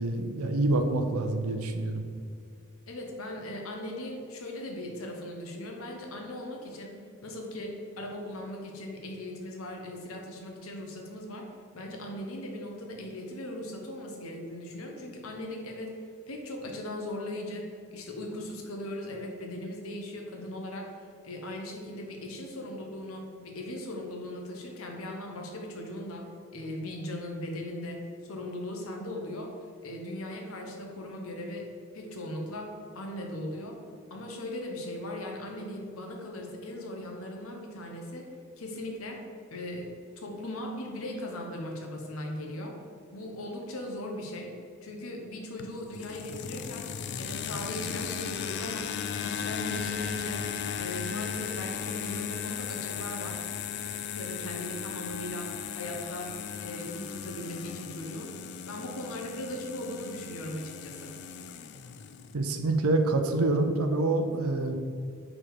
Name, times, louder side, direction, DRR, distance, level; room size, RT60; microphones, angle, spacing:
voice 1, 0.0-2.0 62.3-64.8, right 2 dB, 90° right, 6 dB, 0.6 m, -26 dB
voice 2, 2.9-7.0 7.2-11.5 11.7-20.9 21.2-29.6 29.8-31.7 31.9-33.8 34.1-38.3 38.6-39.2 39.5-42.8 43.1-44.5 44.8-46.9 47.2-48.9 49.2-50.4 50.8-53.4 54.1-56.4 56.6-58.3 58.7-61.2, left 1 dB, 80° left, 2 dB, 1.0 m, -38 dB
sound 1, 45.6-62.3, left 8 dB, 50° left, 0.3 m, -36 dB
4.9 x 4.3 x 4.7 m, 2.3 s
head